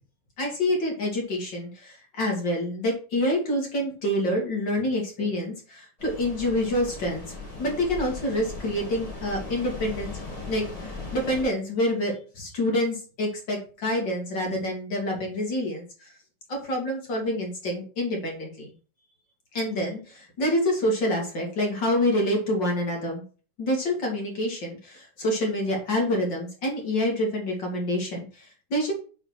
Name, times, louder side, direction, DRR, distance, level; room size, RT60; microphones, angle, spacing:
voice 1, 0.4-10.1 10.5-16.1 16.5-18.7 19.5-23.2 23.6-28.9, left 1 dB, 40° left, 1 dB, 2.3 m, -27 dB
sound 1, 6.0-11.4, left 3 dB, 15° left, 1.8 m, -38 dB
6.4 x 4.8 x 6.0 m, 0.38 s
omnidirectional pair, 3.7 m